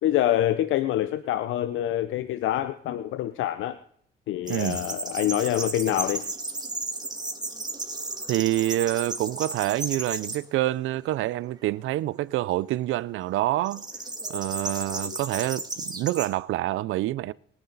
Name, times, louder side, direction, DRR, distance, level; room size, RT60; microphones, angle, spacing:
voice 1, 0.0-3.8 4.3-6.3 15.0-15.2, left 12 dB, 85° left, 0.7 m, -26 dB
sound 1, 4.5-10.4 10.9-11.5 13.6-16.3, right 2 dB, 20° right, 2.3 m, -34 dB
voice 2, 4.5-4.8 8.3-13.9 14.3-17.3, right 15 dB, 85° right, 0.5 m, -27 dB
26.0 x 9.8 x 4.0 m
cardioid pair, 90°, 20 cm